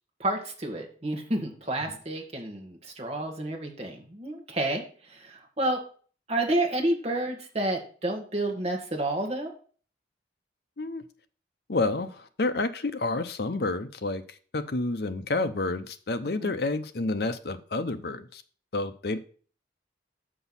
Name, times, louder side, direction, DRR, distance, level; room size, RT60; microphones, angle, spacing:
voice 1, 0.2-5.8 6.3-9.5 16.4-16.5, right 1 dB, 35° right, 1 dB, 1.6 m, -30 dB
voice 2, 11.7-14.2 14.5-18.4 18.7-19.2, left 2 dB, 55° left, 10 dB, 0.7 m, -29 dB
6.2 x 6.0 x 5.5 m, 0.42 s
head